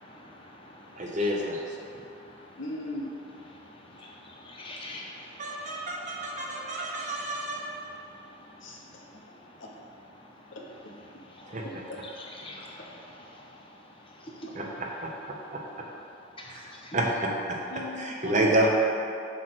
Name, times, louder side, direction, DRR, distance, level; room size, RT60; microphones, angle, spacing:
voice 1, 1.0-1.6 5.4-7.9 11.5-11.6 14.5-15.6 16.5-17.6 18.0-18.7, right 1 dB, 40° right, -1 dB, 0.9 m, -29 dB
voice 2, 2.6-3.1 8.6-9.0 9.6-9.7 10.5-10.7 11.6-12.0 17.7-18.3, left 2 dB, 75° left, -2 dB, 1.1 m, -38 dB
voice 3, 4.4-5.8 11.4-11.6 12.4-12.9 16.4-16.5, left 2 dB, 30° left, -2 dB, 1.0 m, -43 dB
8.1 x 3.3 x 6.0 m, 2.6 s
head